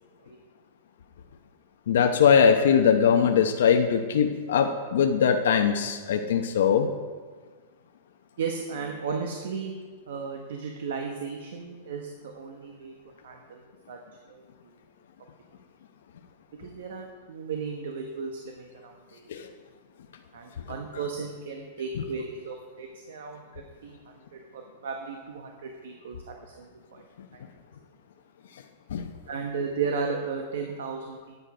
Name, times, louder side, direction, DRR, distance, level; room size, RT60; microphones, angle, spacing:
voice 1, 1.9-6.9 19.3-19.5 28.9-29.1, left 7 dB, 75° left, 4 dB, 0.8 m, -21 dB
voice 2, 8.4-9.7 10.1-12.9 13.2-14.0 14.3-14.4 16.6-19.3 20.3-23.4 23.8-24.0 24.3-26.2 26.5-26.7 26.9-27.0 29.3-31.3, right 5 dB, 75° right, 3 dB, 1.1 m, -35 dB
9.5 x 9.1 x 5.0 m, 1.5 s
supercardioid pair, 175°, 0 cm